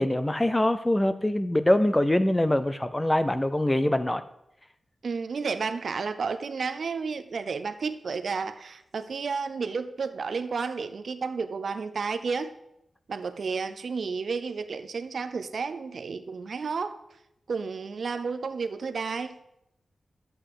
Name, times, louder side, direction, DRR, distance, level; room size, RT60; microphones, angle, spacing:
voice 1, 0.0-4.2, left 1 dB, 10° left, 12 dB, 0.4 m, -24 dB
voice 2, 5.0-12.5 13.1-17.0 17.5-19.3, right 5 dB, 55° right, 11 dB, 0.6 m, -31 dB
11.5 x 7.8 x 4.9 m, 0.82 s
wide cardioid pair, 170°, 0 cm